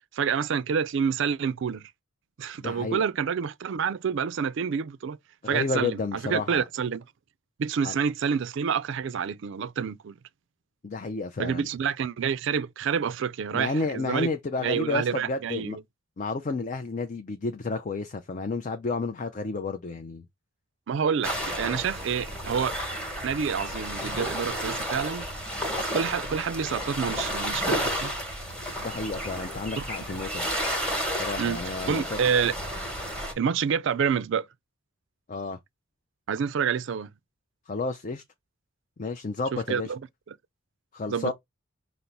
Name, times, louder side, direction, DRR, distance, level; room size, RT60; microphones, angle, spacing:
voice 1, 0.1-1.9 2.4-5.2 5.5-7.0 7.6-10.2 11.4-14.3 14.6-15.8 20.9-22.9 23.2-25.3 25.8-28.1 29.8-29.9 31.4-31.6 31.9-32.5 33.4-34.5 36.3-37.1 39.5-40.0 40.3-40.4 41.1-41.3, right 6 dB, 60° right, 0.4 m, -28 dB
voice 2, 2.6-3.0 5.4-6.6 7.8-7.9 10.8-11.7 13.5-15.8 16.2-20.2 28.8-30.5 31.1-32.2 35.3-35.6 37.7-38.2 39.0-39.9 40.9-41.3, left 3 dB, 40° left, 0.4 m, -31 dB
sound 1, 21.2-33.3, equal, 5° left, 1.1 m, -32 dB
5.3 x 2.0 x 4.4 m
head